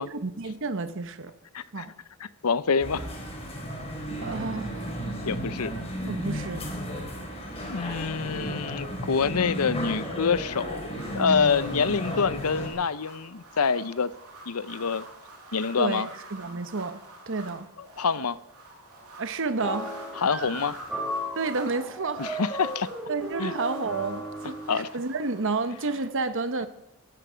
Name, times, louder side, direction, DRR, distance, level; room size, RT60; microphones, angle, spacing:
voice 1, 0.0-1.3 1.7-1.9 4.2-5.0 6.1-6.6 15.8-17.0 17.3-17.7 19.2-20.0 21.4-22.3 23.1-26.7, right 3 dB, 60° right, 1.0 m, -30 dB
voice 2, 1.5-1.9 2.2-3.1 5.3-5.7 7.6-10.9 11.1-14.1 14.5-15.0 15.5-16.1 18.0-18.4 20.2-20.8 22.2-22.9 23.4-23.5 24.7-24.9, left 5 dB, 80° left, 0.7 m, -26 dB
sound 1, 2.8-12.7, equal, 30° left, 4.5 m, -33 dB
sound 2, 10.9-26.1, right 2 dB, 85° right, 7.3 m, -48 dB
sound 3, 19.6-24.8, right 1 dB, ahead, 6.9 m, -35 dB
18.5 x 15.0 x 5.1 m
head